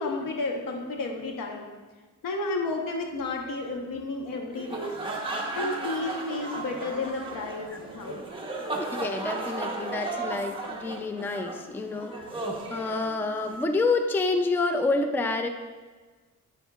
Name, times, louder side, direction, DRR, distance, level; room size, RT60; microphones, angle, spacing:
voice 1, 0.0-1.7 2.2-4.9 5.5-8.2, left 2 dB, 85° left, 2 dB, 1.1 m, -32 dB
sound 1, 4.5-13.6, right 2 dB, 15° right, 0.9 m, -35 dB
voice 2, 8.8-15.5, left 3 dB, 5° left, 7 dB, 0.3 m, -28 dB
8.1 x 7.1 x 2.3 m, 1.4 s
cardioid pair, 135°, 33 cm